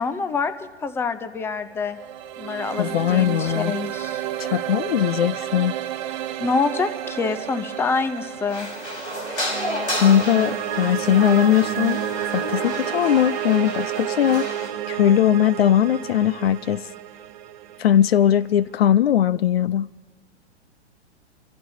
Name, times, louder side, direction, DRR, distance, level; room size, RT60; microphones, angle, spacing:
voice 1, 0.0-2.0 2.4-4.2 6.4-8.7, left 4 dB, 5° left, 0.6 m, -26 dB
sound 1, 1.6-18.7, right 11 dB, 40° right, 0.9 m, -31 dB
voice 2, 2.8-3.7 4.4-5.7 10.0-12.0 12.3-14.5 14.9-16.9 17.8-19.9, left 10 dB, 60° left, 0.5 m, -19 dB
sound 2, 8.5-14.7, left 1 dB, 85° left, 4.9 m, -31 dB
30.0 x 15.0 x 2.8 m
figure-of-eight pair, 110°, 35 cm